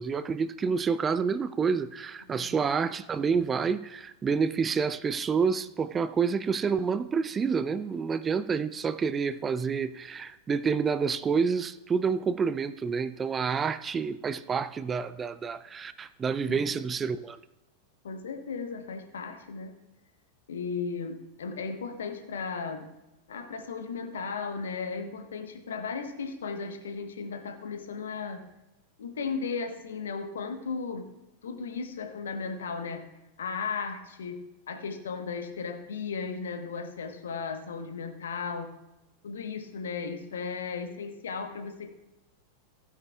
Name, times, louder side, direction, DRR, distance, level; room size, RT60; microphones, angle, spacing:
voice 1, 0.0-17.4, right 5 dB, 20° right, 0.4 m, -28 dB
voice 2, 18.0-19.7 20.5-22.9 23.3-28.4 29.0-31.1 31.4-33.1 33.4-38.7 39.2-41.9, left 5 dB, 65° left, 1.1 m, -35 dB
15.5 x 9.5 x 2.3 m
figure-of-eight pair, 90°, 0 cm